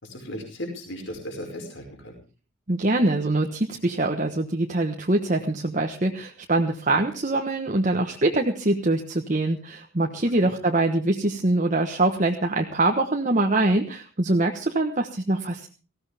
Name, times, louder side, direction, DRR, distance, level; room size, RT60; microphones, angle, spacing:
voice 1, 0.0-2.2 10.4-10.5, equal, 60° left, 3 dB, 5.2 m, -36 dB
voice 2, 2.7-15.7, right 2 dB, 35° right, 3 dB, 1.2 m, -24 dB
18.5 x 16.0 x 3.5 m, 0.35 s
head